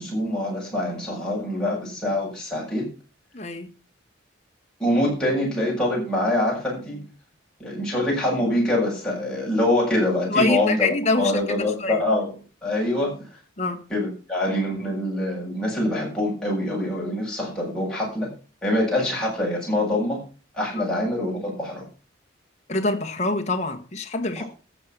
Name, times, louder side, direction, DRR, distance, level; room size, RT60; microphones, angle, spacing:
voice 1, 0.0-2.9 4.8-7.0 7.6-12.3 12.6-13.2 13.9-18.3 18.6-20.2 20.5-21.9 24.4-24.5, left 1 dB, 5° left, 7.7 m, -24 dB
voice 2, 3.3-3.7 10.3-11.3 11.8-12.0 13.6-13.8 20.8-20.9 22.7-24.4, left 3 dB, 35° left, 1.5 m, -25 dB
14.0 x 8.3 x 6.1 m
head